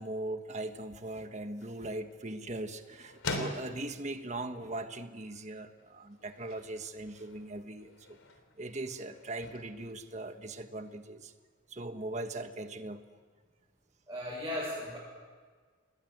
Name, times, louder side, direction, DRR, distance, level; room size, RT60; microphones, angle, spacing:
voice 1, 0.0-8.2 8.6-11.3 11.7-13.0, right 2 dB, 35° right, 7 dB, 1.5 m, -40 dB
sound 1, 1.2-11.0, left 2 dB, 80° left, 3.5 m, -46 dB
voice 2, 14.1-15.0, left 1 dB, 15° right, -7 dB, 7.2 m, -36 dB
29.0 x 21.0 x 8.0 m, 1.6 s
head